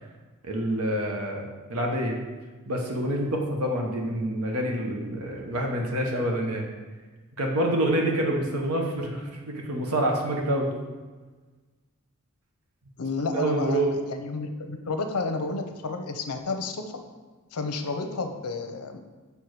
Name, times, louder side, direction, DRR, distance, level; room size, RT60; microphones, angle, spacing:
voice 1, 0.4-2.2 2.7-6.7 7.4-10.7 13.1-14.0, right 1 dB, 75° right, 1 dB, 1.1 m, -27 dB
voice 2, 13.0-16.8 17.5-19.0, left 3 dB, 80° left, 6 dB, 0.7 m, -31 dB
5.5 x 4.6 x 4.7 m, 1.3 s
head